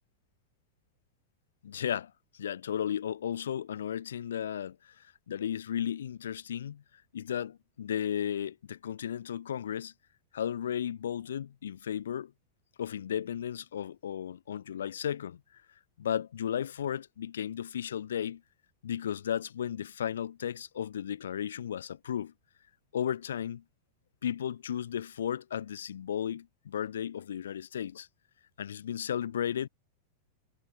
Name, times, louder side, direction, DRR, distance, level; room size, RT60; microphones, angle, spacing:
voice 1, 1.6-6.8 7.1-9.9 10.3-12.3 12.8-15.4 16.0-18.4 18.8-22.3 22.9-23.6 24.2-28.1 28.6-29.7, left 9 dB, 65° left, 2.5 m, -34 dB
figure-of-eight pair, 90°, 0 cm